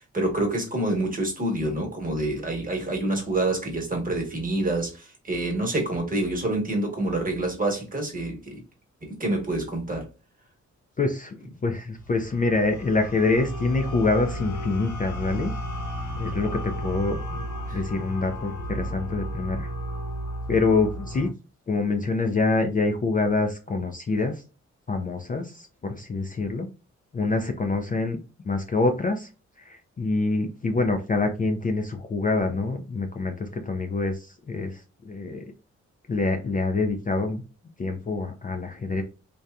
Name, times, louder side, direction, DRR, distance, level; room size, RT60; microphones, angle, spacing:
voice 1, 0.0-8.6 9.0-10.1 17.7-17.8, right 2 dB, 30° right, 1.2 m, -27 dB
voice 2, 11.0-15.5 16.2-17.4 17.7-19.7 20.5-21.3 21.7-24.4 24.9-26.7 27.1-28.2 28.5-29.3 29.6-35.4 36.1-37.4 37.8-39.0, left 3 dB, 30° left, 0.4 m, -26 dB
sound 1, 11.9-21.3, equal, 75° left, 0.8 m, -33 dB
2.7 x 2.2 x 2.3 m
cardioid pair, 75°, 30 cm